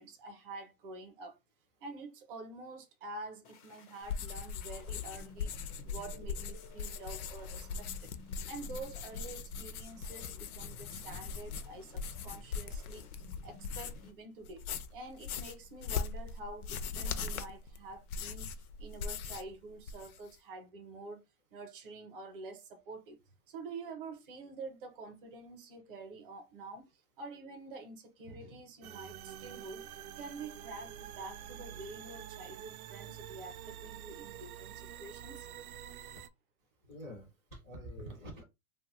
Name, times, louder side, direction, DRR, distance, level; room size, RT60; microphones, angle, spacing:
voice 1, 0.0-1.4 1.8-5.5 5.8-8.1 8.5-13.1 13.4-14.6 14.9-21.2 21.5-23.2 23.5-26.9 27.2-29.8 30.1-35.5, right 3 dB, 40° right, 0.7 m, -47 dB
sound 1, 3.4-14.1, left 5 dB, 90° left, 1.0 m, -56 dB
sound 2, 4.0-14.1 14.4-19.5 19.8-20.3, left 5 dB, 75° left, 0.6 m, -40 dB
sound 3, 28.8-36.3, right 10 dB, 75° right, 0.5 m, -47 dB
voice 2, 36.9-38.4, equal, 10° left, 0.3 m, -46 dB
2.8 x 2.3 x 3.0 m
supercardioid pair, 165°, 44 cm